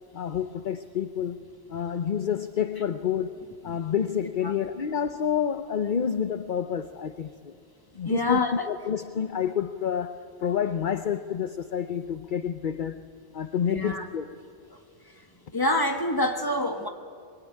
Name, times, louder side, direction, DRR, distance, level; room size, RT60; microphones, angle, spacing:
voice 1, 0.1-1.4 1.7-3.3 3.6-7.5 7.9-8.4 8.7-14.3, left 8 dB, 50° left, 0.9 m, -29 dB
voice 2, 8.0-8.7 13.7-14.1 14.7-14.8 15.1-15.2 15.5-16.9, left 2 dB, 20° left, 1.8 m, -26 dB
24.5 x 22.0 x 10.0 m
omnidirectional pair, 1.2 m